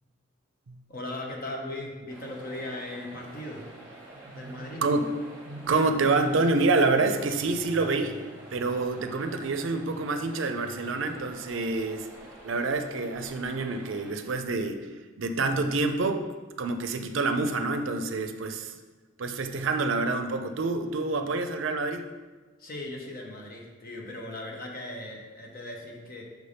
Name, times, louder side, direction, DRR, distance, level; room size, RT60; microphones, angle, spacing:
voice 1, 0.9-3.7 4.3-4.8 22.6-26.2, left 1 dB, 45° left, 0 dB, 1.0 m, -38 dB
sound 1, 2.1-14.1, right 1 dB, 15° right, 1.3 m, -48 dB
voice 2, 4.3-5.1 5.5-8.2 8.5-12.1 12.4-14.8 15.2-16.2 16.6-18.7 19.2-22.0, right 3 dB, 65° right, 7 dB, 0.5 m, -27 dB
6.1 x 3.4 x 5.4 m, 1.3 s
head